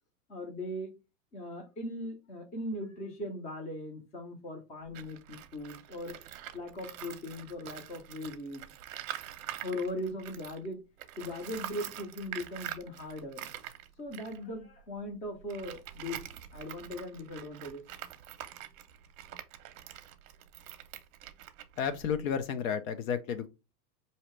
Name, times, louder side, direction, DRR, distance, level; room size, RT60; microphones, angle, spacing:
voice 1, 0.3-0.9 1.3-6.2 6.5-8.7 9.6-10.8 11.2-13.5 14.0-16.2 16.5-17.8, left 1 dB, 15° left, 0.6 m, -39 dB
Tools, 4.8-10.7 11.0-22.4, right 12 dB, 65° right, 0.6 m, -45 dB
voice 2, 21.8-23.5, left 7 dB, 60° left, 0.6 m, -32 dB
4.0 x 2.8 x 3.1 m
supercardioid pair, 155°, 46 cm